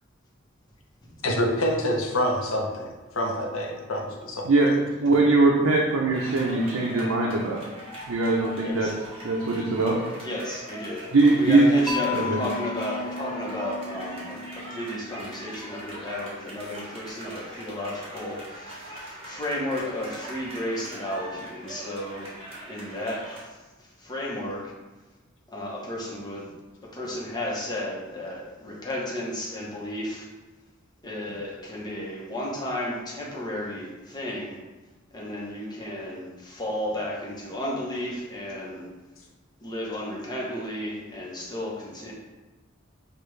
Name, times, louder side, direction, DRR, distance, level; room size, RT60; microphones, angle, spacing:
voice 1, 1.2-2.9 3.1-4.5, equal, 70° left, 1 dB, 0.8 m, -26 dB
voice 2, 5.0-7.6 8.1-8.9 9.2-10.0 11.1-11.7 12.1-12.4, right 3 dB, 75° right, -2 dB, 0.6 m, -21 dB
sound 1, 6.1-23.4, right 1 dB, 30° right, 1.3 m, -41 dB
voice 3, 8.6-8.9 10.2-22.3 22.7-24.7 25.5-26.5 26.8-30.3 31.0-34.6 35.1-38.9 39.6-42.1, left 1 dB, 20° left, -4 dB, 1.0 m, -33 dB
Mallet percussion, 11.9-15.9, left 3 dB, ahead, 0.6 m, -34 dB
6.6 x 2.4 x 3.2 m, 1.2 s
head